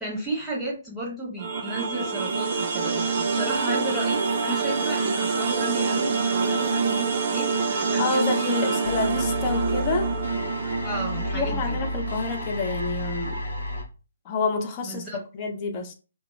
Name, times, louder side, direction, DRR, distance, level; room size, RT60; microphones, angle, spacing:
voice 1, 0.0-8.8 10.8-11.8 14.8-15.2, right 1 dB, ahead, 0.9 m, -33 dB
sound 1, 1.4-12.4, right 4 dB, 35° right, 0.4 m, -26 dB
voice 2, 8.0-10.1 11.2-13.4 14.2-15.0 15.3-15.9, left 3 dB, 25° left, 0.5 m, -28 dB
sound 2, 8.8-13.8, left 1 dB, 70° left, 1.0 m, -31 dB
2.1 x 2.1 x 3.1 m
figure-of-eight pair, 135°, 0 cm